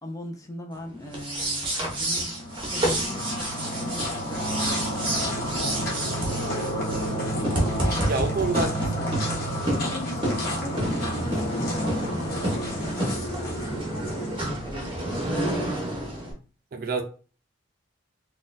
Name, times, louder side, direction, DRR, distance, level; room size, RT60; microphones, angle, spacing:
voice 1, 0.0-2.3 2.7-5.8 6.2-7.0 8.5-9.2 9.7-16.4, left 2 dB, 15° left, 2 dB, 0.5 m, -40 dB
sound 1, 1.1-16.3, right 1 dB, 25° right, 0.8 m, -30 dB
sound 2, 2.0-15.3, equal, 50° left, 1.0 m, -31 dB
voice 2, 8.1-8.7 16.7-17.0, right 3 dB, 45° right, 6 dB, 0.4 m, -26 dB
4.1 x 2.2 x 2.5 m, 0.37 s
head